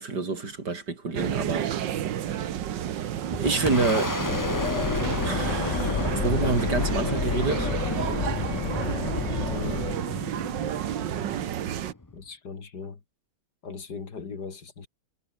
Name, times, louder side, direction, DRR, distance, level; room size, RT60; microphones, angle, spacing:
voice 1, 0.0-2.0 3.4-4.2 5.2-7.7, right 4 dB, 70° right, 4.1 m, -28 dB
sound 1, 1.1-11.9, right 10 dB, 85° right, 1.8 m, -31 dB
Boom, 2.8-12.2, left 2 dB, 15° left, 0.9 m, -32 dB
sound 2, 4.3-9.9, left 8 dB, 50° left, 1.1 m, -31 dB
voice 2, 9.4-9.9 12.1-13.0 13.6-14.9, left 5 dB, 65° left, 3.0 m, -38 dB
omnidirectional pair, 1.9 m